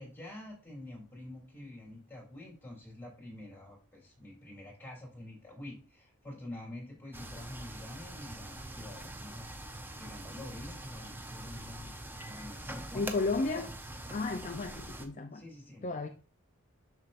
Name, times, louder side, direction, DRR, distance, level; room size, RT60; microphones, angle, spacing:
voice 1, 0.0-9.5 10.0-13.1 15.3-16.1, left 1 dB, 10° left, 3.2 m, -47 dB
sound 1, 7.1-15.1, right 1 dB, 10° right, 0.7 m, -44 dB
voice 2, 12.9-13.7 14.1-15.4 15.8-16.1, left 3 dB, 35° left, 0.5 m, -33 dB
7.2 x 6.6 x 2.5 m
head